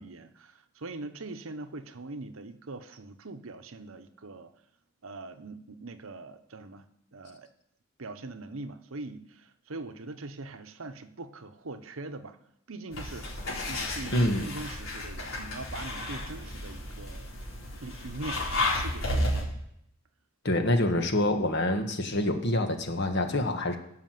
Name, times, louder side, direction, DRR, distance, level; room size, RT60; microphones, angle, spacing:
voice 1, 0.0-4.5 5.0-6.8 7.1-7.5 8.0-12.4 12.7-13.3 13.6-17.3 17.8-19.5, right 2 dB, 80° right, 9 dB, 0.9 m, -42 dB
sound 1, 12.9-19.4, left 1 dB, 75° left, 4.1 m, -32 dB
voice 2, 14.1-14.4 20.4-23.8, left 1 dB, 55° left, 5 dB, 1.5 m, -26 dB
16.5 x 6.1 x 7.7 m, 0.77 s
head